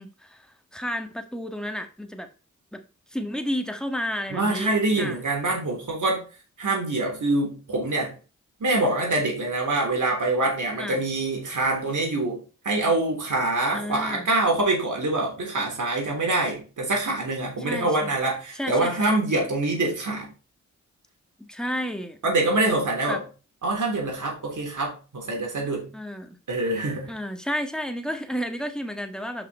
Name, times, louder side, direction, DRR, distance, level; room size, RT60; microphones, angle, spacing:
voice 1, 0.0-2.3 2.7-2.8 3.1-5.2 10.8-11.0 13.7-14.3 17.6-18.1 18.5-19.1 21.4-22.2 23.1-23.2 25.9-26.4 27.1-29.5, equal, ahead, 1.6 m, -32 dB
voice 2, 4.3-6.2 6.6-8.1 8.6-20.3 22.2-23.2 23.6-25.9 26.5-27.1, right 2 dB, 70° right, 3.6 m, -25 dB
5.8 x 5.7 x 4.3 m
cardioid pair, 55°, 31 cm